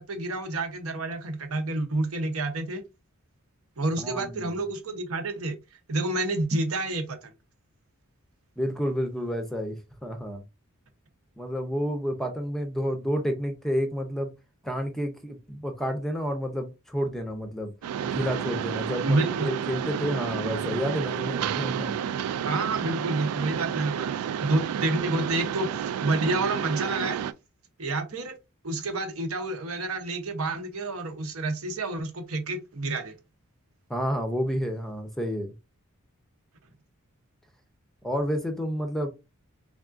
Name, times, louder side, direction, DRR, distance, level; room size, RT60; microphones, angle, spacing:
voice 1, 0.0-2.8 3.8-5.6 5.9-7.2 19.0-19.5 22.4-24.1 24.4-27.2 27.8-28.3 28.6-33.1, right 2 dB, 70° right, 0.8 m, -29 dB
voice 2, 4.0-4.5 8.6-10.4 11.4-14.3 14.6-17.7 18.0-21.9 33.9-35.5 38.0-39.1, equal, ahead, 0.5 m, -30 dB
Mechanisms, 17.8-27.3, right 8 dB, 90° right, 0.3 m, -30 dB
3.5 x 3.5 x 2.5 m
head